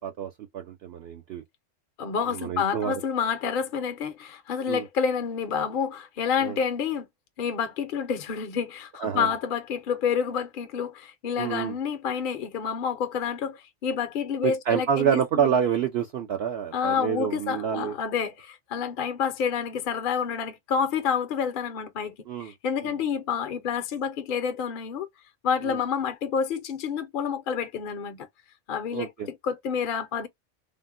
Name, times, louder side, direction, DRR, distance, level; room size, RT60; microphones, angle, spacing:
voice 1, 0.0-1.4 2.3-2.9 4.7-4.9 6.4-6.6 9.0-9.3 11.4-11.8 14.4-17.9 22.3-22.5 25.6-25.8 28.9-29.3, right 8 dB, 60° right, 0.8 m, -27 dB
voice 2, 2.0-7.1 7.4-15.5 16.7-25.1 25.4-28.3 28.7-30.3, left 7 dB, 55° left, 0.7 m, -29 dB
3.4 x 2.1 x 2.4 m
omnidirectional pair, 1.3 m